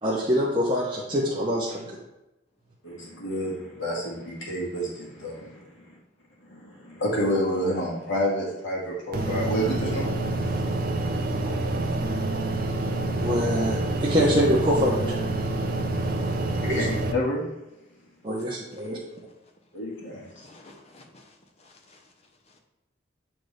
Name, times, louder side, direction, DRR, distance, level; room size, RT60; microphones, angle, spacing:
voice 1, 0.0-1.8 11.4-11.7 13.1-15.3 16.7-16.8 18.2-19.0, equal, 25° right, 0.9 m, -25 dB
voice 2, 2.8-6.0 6.4-10.1 16.6-17.4 19.7-20.5, equal, 85° left, 2.1 m, -29 dB
sound 1, 9.1-17.1, right 2 dB, 50° right, 0.6 m, -27 dB
voice 3, 20.3-22.0 22.5-22.6, left 2 dB, 35° left, 0.8 m, -53 dB
7.7 x 4.5 x 3.3 m
head